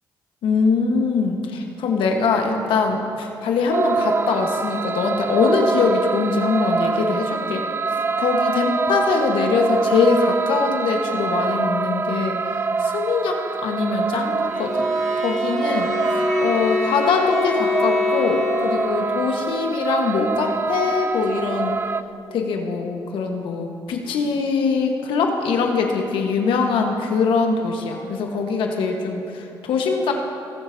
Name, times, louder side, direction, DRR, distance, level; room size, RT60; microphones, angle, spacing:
voice 1, 0.4-7.6 8.2-12.4 12.8-14.9 15.2-15.9 16.4-21.8 22.3-30.1, left 4 dB, 75° left, 2 dB, 1.3 m, -22 dB
sound 1, 3.7-22.0, right 4 dB, 25° right, 0.3 m, -25 dB
Bowed string instrument, 14.5-19.2, left 5 dB, 5° left, 1.9 m, -26 dB
20.0 x 7.1 x 2.8 m, 2.8 s
supercardioid pair, 70°, 9 cm